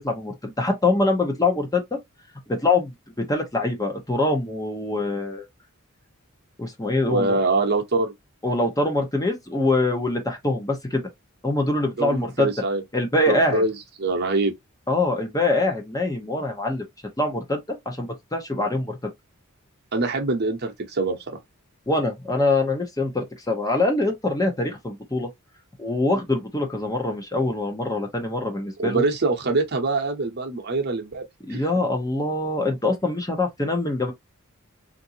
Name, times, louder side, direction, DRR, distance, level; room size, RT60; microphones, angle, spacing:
voice 1, 0.0-2.0 2.5-5.5 6.6-7.4 8.4-11.0 11.4-12.5 12.9-13.6 14.9-16.8 17.2-17.6 17.9-19.0 21.9-25.3 25.8-29.0 31.5-34.1, left 2 dB, 15° left, 0.9 m, -24 dB
voice 2, 7.1-8.1 12.0-12.8 13.3-14.5 19.9-21.4 28.8-31.2 31.5-31.6, right 3 dB, 50° right, 0.9 m, -24 dB
3.6 x 2.6 x 2.8 m
head